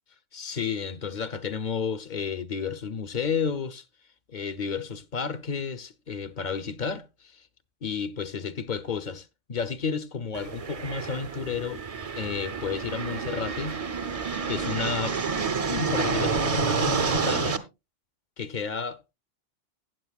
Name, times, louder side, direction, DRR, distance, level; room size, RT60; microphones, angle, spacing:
voice 1, 0.3-3.8 4.3-7.4 7.8-11.8 12.2-13.8 14.5-15.1 15.7-17.7 18.4-19.1, left 6 dB, 45° left, 0.8 m, -31 dB
sound 1, 10.3-17.6, right 5 dB, 35° right, 0.7 m, -29 dB
15.5 x 8.9 x 2.4 m
omnidirectional pair, 1.2 m